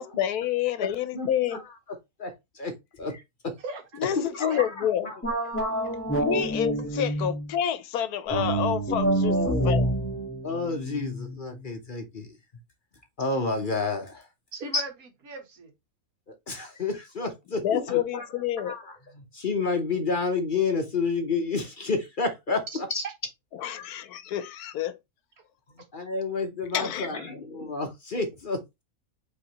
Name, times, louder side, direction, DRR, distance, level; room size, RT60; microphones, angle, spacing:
voice 1, 0.0-1.6 3.9-5.1 6.2-9.9 17.5-18.7 23.5-25.0 26.7-27.3, left 10 dB, 80° left, 1.2 m, -28 dB
voice 2, 2.2-2.7 3.0-3.5 4.3-4.7 5.0-5.1 9.3-9.7 10.4-12.3 13.2-14.2 14.7-14.8 16.5-18.2 18.6-18.8 19.3-23.0 25.9-28.8, left 3 dB, 40° left, 0.8 m, -30 dB
sound 1, 5.2-7.5 8.3-11.6, right 2 dB, 10° left, 1.3 m, -27 dB
voice 3, 14.5-15.7 22.7-23.1, right 3 dB, 70° right, 1.6 m, -38 dB
5.0 x 3.5 x 2.9 m
omnidirectional pair, 1.6 m